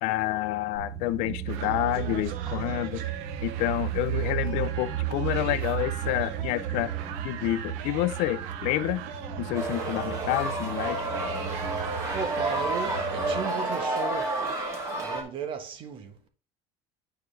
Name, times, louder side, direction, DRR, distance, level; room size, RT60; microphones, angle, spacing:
voice 1, 0.0-3.2 3.4-6.9 7.2-9.0 9.4-11.1, left 15 dB, 75° left, 0.6 m, -29 dB
sound 1, 0.7-13.4, right 10 dB, ahead, 1.9 m, -34 dB
sound 2, 1.5-14.6, right 10 dB, 80° right, 0.8 m, -40 dB
sound 3, 9.5-15.2, right 2 dB, 25° right, 2.4 m, -30 dB
voice 2, 12.1-14.4 14.9-16.2, right 6 dB, 45° right, 1.3 m, -35 dB
9.0 x 4.7 x 3.3 m
cardioid pair, 145°, 12 cm